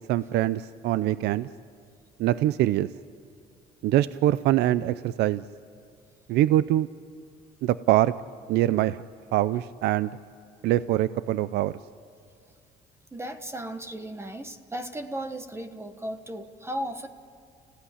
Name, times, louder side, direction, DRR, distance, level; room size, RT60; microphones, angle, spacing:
voice 1, 0.1-1.5 2.2-2.9 3.8-5.4 6.3-6.9 7.6-8.1 8.5-9.0 9.3-10.1 10.6-11.7, right 14 dB, 80° right, 15 dB, 0.5 m, -23 dB
voice 2, 13.1-17.1, right 1 dB, 15° right, 8 dB, 1.3 m, -35 dB
29.5 x 16.5 x 9.9 m, 2.2 s
cardioid pair, 110°, 17 cm